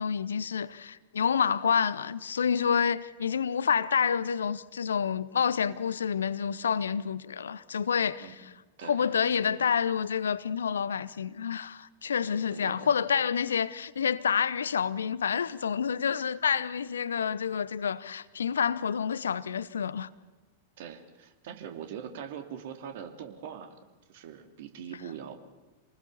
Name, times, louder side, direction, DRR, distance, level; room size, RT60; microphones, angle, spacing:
voice 1, 0.0-8.3 8.8-20.1, left 7 dB, 70° left, 0.8 m, -28 dB
voice 2, 8.8-9.1 12.5-12.9 20.8-23.8 24.1-25.4, right 8 dB, 50° right, 2.6 m, -42 dB
28.0 x 19.5 x 7.0 m
figure-of-eight pair, 95°, 0 cm